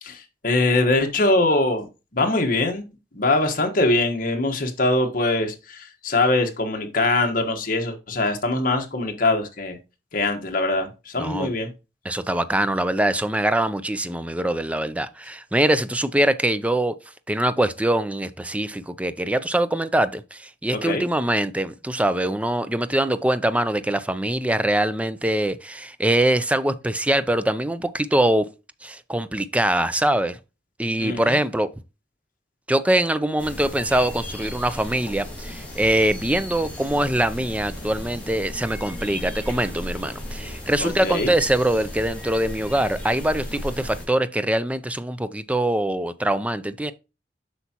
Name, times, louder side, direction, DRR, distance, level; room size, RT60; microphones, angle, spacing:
voice 1, 0.0-1.9 2.1-2.8 3.1-9.8 10.1-11.7 20.7-21.0 31.0-31.4 40.8-41.3, left 2 dB, 50° left, 1.4 m, -22 dB
voice 2, 11.2-11.5 12.0-16.9 17.3-28.5 28.8-30.4 30.8-31.7 32.7-46.9, right 1 dB, 10° right, 0.5 m, -23 dB
sound 1, 33.4-44.1, left 1 dB, 10° left, 3.6 m, -35 dB
8.1 x 5.8 x 2.9 m
head